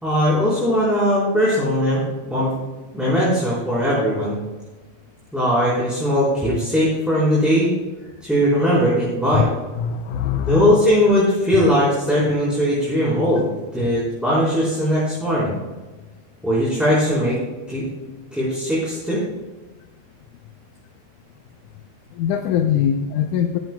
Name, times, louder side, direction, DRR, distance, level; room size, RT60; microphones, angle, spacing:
voice 1, 0.0-2.0 2.3-2.5 2.9-4.3 5.3-7.7 8.2-9.5 10.5-13.5 13.7-15.5 16.4-17.4 17.7-17.9 18.3-19.2, equal, ahead, -10 dB, 3.8 m, -19 dB
voice 2, 9.8-10.8 11.5-11.7 13.8-14.0 18.2-18.3 22.1-23.6, left 9 dB, 90° left, 5 dB, 2.2 m, -22 dB
15.5 x 14.0 x 2.3 m, 1.2 s
omnidirectional pair, 3.4 m